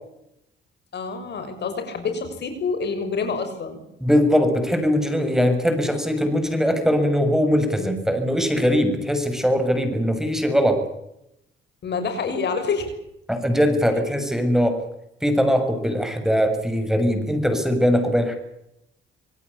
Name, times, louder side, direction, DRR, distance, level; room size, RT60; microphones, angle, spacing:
voice 1, 0.9-3.8 11.8-12.9, left 5 dB, 60° left, 8 dB, 6.4 m, -27 dB
voice 2, 4.0-10.8 13.3-14.8 15.2-18.4, equal, ahead, 7 dB, 7.1 m, -21 dB
27.0 x 18.0 x 8.6 m, 0.82 s
cardioid pair, 90°, 20 cm